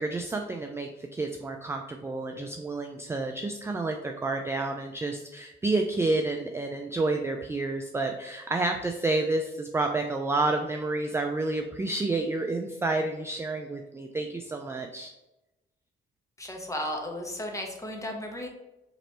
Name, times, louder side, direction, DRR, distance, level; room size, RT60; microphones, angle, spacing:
voice 1, 0.0-15.1, right 2 dB, 15° right, 3 dB, 0.3 m, -29 dB
voice 2, 16.4-18.5, left 1 dB, 15° left, 2 dB, 0.9 m, -34 dB
3.1 x 3.0 x 4.1 m, 0.98 s
cardioid pair, 90°, 20 cm